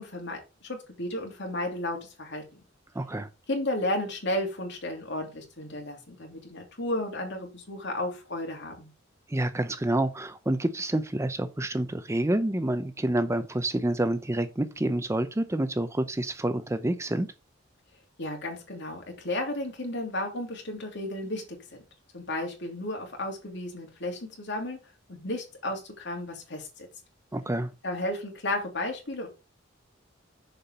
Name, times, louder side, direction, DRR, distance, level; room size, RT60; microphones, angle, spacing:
voice 1, 0.0-2.6 3.5-8.9 18.2-21.6 22.1-24.8 25.1-26.9 27.8-29.3, left 1 dB, 65° left, 2.9 m, -33 dB
voice 2, 2.9-3.3 9.3-17.3 27.3-27.7, right 1 dB, 15° right, 0.6 m, -28 dB
6.9 x 5.7 x 5.5 m
head